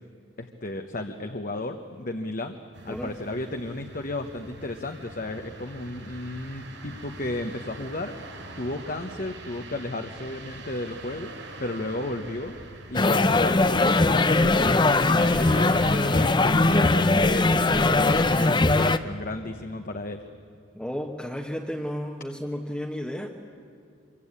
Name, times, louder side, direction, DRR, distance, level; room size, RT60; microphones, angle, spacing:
voice 1, 0.4-2.6 2.8-8.1 8.6-11.3 11.6-12.6 12.9-20.2, left 2 dB, 45° left, 5 dB, 1.1 m, -33 dB
sound 1, 2.7-18.5, right 2 dB, 70° right, 6.2 m, -42 dB
voice 2, 2.9-3.2 20.7-23.3, equal, 5° left, 0 dB, 1.2 m, -33 dB
sound 2, 12.9-19.0, left 2 dB, 25° left, 0.6 m, -20 dB
25.5 x 24.0 x 8.8 m, 2.4 s
head